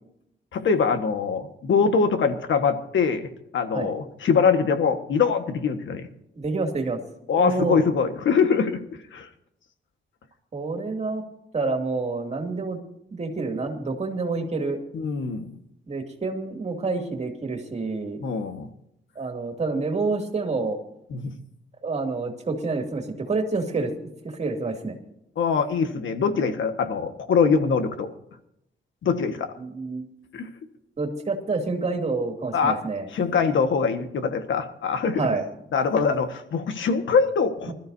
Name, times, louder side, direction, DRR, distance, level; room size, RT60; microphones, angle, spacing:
voice 1, 0.5-6.1 7.3-8.8 9.1-9.3 14.9-15.5 18.2-18.7 21.1-21.4 25.4-28.1 29.0-29.5 30.3-30.5 32.5-32.8 33.1-35.3 35.7-37.7, left 5 dB, 80° left, 7 dB, 1.6 m, -23 dB
voice 2, 6.4-7.0 7.4-7.8 10.5-11.2 11.5-12.8 13.1-14.8 15.9-18.2 19.2-20.8 21.8-23.9 24.4-24.9 29.6-30.1 31.0-33.1 35.2-35.4 37.7-37.8, right 3 dB, 35° right, 3 dB, 2.5 m, -28 dB
25.0 x 13.5 x 2.8 m, 0.79 s
wide cardioid pair, 150°, 19 cm